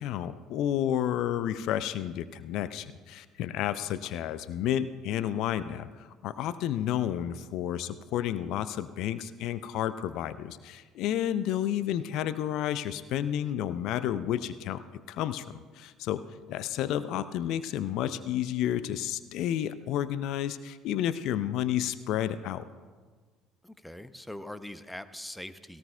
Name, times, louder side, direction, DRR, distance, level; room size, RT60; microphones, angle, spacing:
voice 1, 0.0-14.8 15.1-16.2 16.5-22.6, left 11 dB, 55° left, 14 dB, 0.4 m, -31 dB
voice 2, 23.6-25.8, left 1 dB, 5° left, 13 dB, 0.6 m, -42 dB
17.5 x 17.0 x 2.3 m, 1.5 s
figure-of-eight pair, 55°, 0 cm